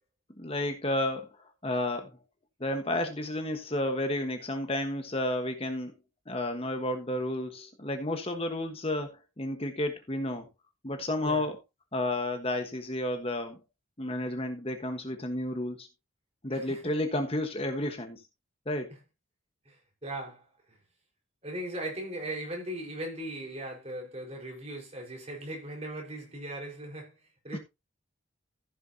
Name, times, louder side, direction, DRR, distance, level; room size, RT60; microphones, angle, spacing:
voice 1, 0.4-1.3 1.6-2.1 2.6-5.9 6.3-10.5 10.8-11.6 11.9-13.6 14.0-15.9 16.4-18.2 18.7-18.9 27.5-27.6, left 1 dB, 30° left, 1.3 m, -31 dB
voice 2, 16.5-16.9 19.7-20.8 21.4-27.1 27.4-27.6, right 1 dB, 30° right, 4.7 m, -39 dB
15.0 x 7.0 x 2.8 m
head